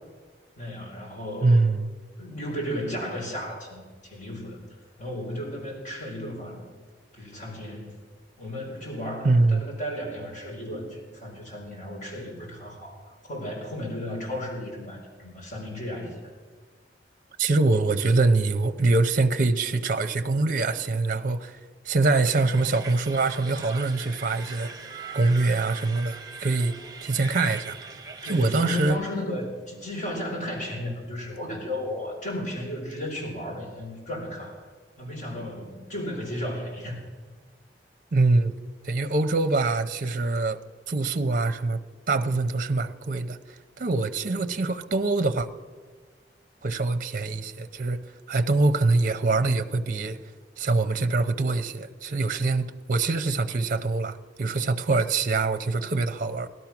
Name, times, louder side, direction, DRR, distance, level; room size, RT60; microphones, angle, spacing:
voice 1, 0.6-1.7 2.2-4.6 5.0-6.6 7.1-8.0 8.4-16.2 28.2-34.6 35.0-37.0, left 1 dB, 45° left, 4.7 m, -34 dB
voice 2, 1.4-1.9 9.2-9.6 17.4-21.6 21.9-24.7 25.1-26.7 27.0-27.8 28.2-29.0 38.1-38.6 38.8-40.6 40.9-41.8 42.1-45.5 46.6-48.0 48.3-50.2 50.6-56.5, right 3 dB, 50° right, 0.6 m, -24 dB
sound 1, 22.2-28.9, right 4 dB, 25° right, 1.0 m, -41 dB
17.5 x 12.5 x 6.0 m
head